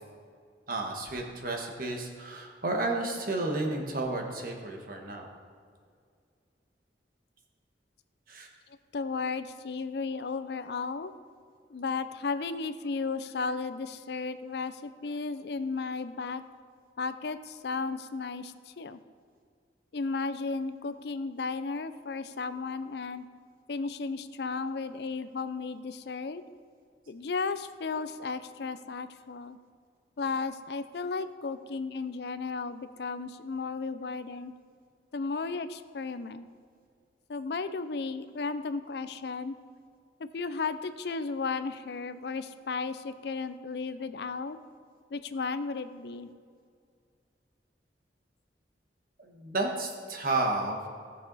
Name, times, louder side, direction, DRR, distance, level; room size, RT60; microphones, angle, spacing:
voice 1, 0.7-5.3 8.3-8.5 49.2-50.9, right 2 dB, 50° right, 2 dB, 1.4 m, -32 dB
voice 2, 8.9-11.1 11.7-16.4 17.0-19.0 19.9-23.3 23.7-26.4 27.1-29.6 30.2-34.5 35.1-36.5 37.3-39.6 40.2-44.6 45.1-46.3, left 4 dB, 65° left, 12 dB, 0.5 m, -34 dB
16.5 x 6.7 x 4.1 m, 2.1 s
head